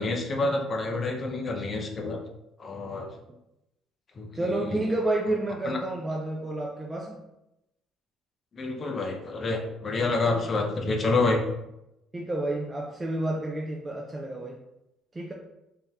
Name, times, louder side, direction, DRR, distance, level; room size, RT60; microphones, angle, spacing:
voice 1, 0.0-2.2 2.6-3.1 4.2-4.8 5.7-5.8 8.5-11.4, left 3 dB, 30° left, 3 dB, 0.6 m, -28 dB
voice 2, 4.3-7.2 10.3-10.4 12.1-14.6 15.1-15.3, right 1 dB, 15° right, -1 dB, 0.4 m, -30 dB
3.5 x 2.8 x 3.5 m, 0.88 s
cardioid pair, 130°, 0 cm